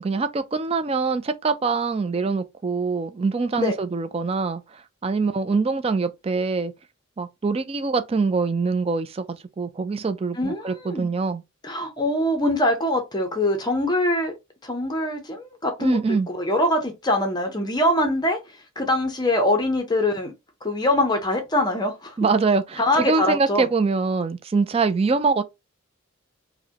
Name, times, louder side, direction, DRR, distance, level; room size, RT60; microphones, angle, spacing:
voice 1, 0.0-4.6 5.0-6.7 7.2-9.2 9.6-11.4 15.8-16.3 22.2-25.4, right 4 dB, 25° right, 0.3 m, -24 dB
voice 2, 10.3-11.1 11.6-14.3 14.6-16.0 16.3-18.4 18.8-20.3 20.6-22.2 22.8-23.7, left 1 dB, 20° left, 0.6 m, -23 dB
4.8 x 2.1 x 2.8 m
head